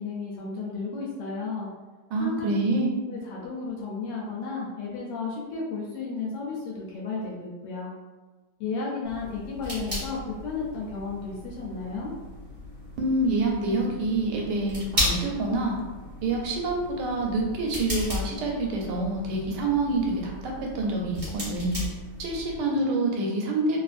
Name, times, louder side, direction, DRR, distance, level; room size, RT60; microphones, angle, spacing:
voice 1, 0.0-1.7 2.2-2.5 3.1-7.9 8.6-12.1, left 4 dB, 90° left, -4 dB, 1.2 m, -33 dB
voice 2, 2.1-2.9 13.0-15.8 16.2-21.8 22.2-23.8, right 2 dB, 90° right, -1 dB, 1.3 m, -27 dB
sound 1, 9.0-22.6, left 1 dB, 30° right, 1.2 m, -35 dB
2.8 x 2.5 x 2.4 m, 1.3 s
omnidirectional pair, 1.8 m